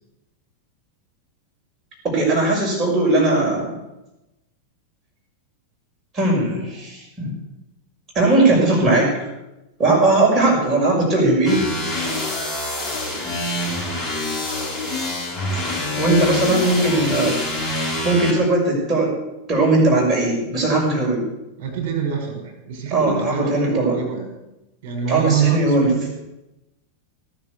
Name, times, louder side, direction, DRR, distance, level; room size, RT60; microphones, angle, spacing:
voice 1, 2.0-3.8 6.1-7.3 8.1-9.1 9.8-11.7 15.5-15.7 16.0-17.4 18.0-19.2 19.5-21.2 22.9-24.0 25.1-25.9, right 2 dB, 25° right, -2 dB, 6.1 m, -18 dB
sound 1, 11.5-18.3, left 2 dB, 5° left, 7.1 m, -26 dB
voice 2, 21.6-24.3 24.8-26.1, right 7 dB, 45° right, 3 dB, 5.3 m, -25 dB
18.5 x 7.2 x 8.3 m, 0.97 s
figure-of-eight pair, 90°, 0 cm